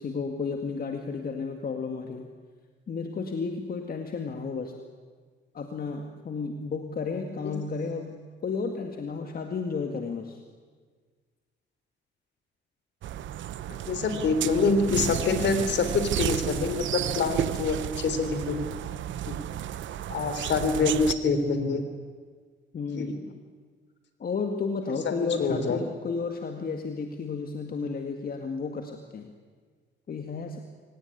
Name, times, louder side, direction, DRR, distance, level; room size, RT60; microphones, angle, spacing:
voice 1, 0.0-2.3 2.9-4.7 5.5-10.4 22.7-23.3 24.2-29.3 30.1-30.6, left 4 dB, 50° left, 5 dB, 2.1 m, -32 dB
sound 1, 13.0-21.1, right 11 dB, 75° right, 0.9 m, -33 dB
voice 2, 13.9-18.7 19.2-19.4 20.1-21.8 23.0-23.1 25.0-25.1 25.4-25.8, left 4 dB, 65° left, 9 dB, 3.5 m, -26 dB
24.5 x 18.5 x 9.8 m, 1.5 s
cardioid pair, 90°, 20 cm